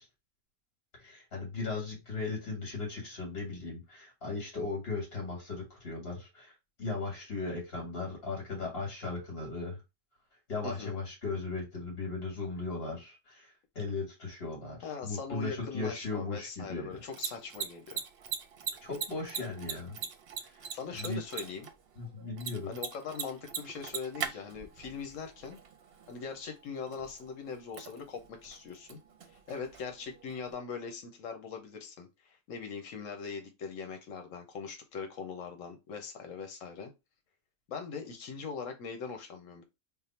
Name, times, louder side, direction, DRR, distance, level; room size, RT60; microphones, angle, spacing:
voice 1, 1.0-6.5 6.8-9.8 10.5-17.0 18.8-20.0 20.4-20.7 20.9-21.2 22.0-22.7, left 3 dB, 50° left, -2 dB, 1.9 m, -37 dB
voice 2, 10.6-10.9 14.8-18.0 20.7-21.7 22.7-25.6 26.1-29.0 29.3-36.9 37.7-39.6, left 5 dB, 80° left, 5 dB, 1.1 m, -41 dB
Mechanisms, 16.9-30.5, right 7 dB, 60° right, 0.7 m, -43 dB
3.5 x 2.0 x 4.2 m, 0.25 s
omnidirectional pair, 1.3 m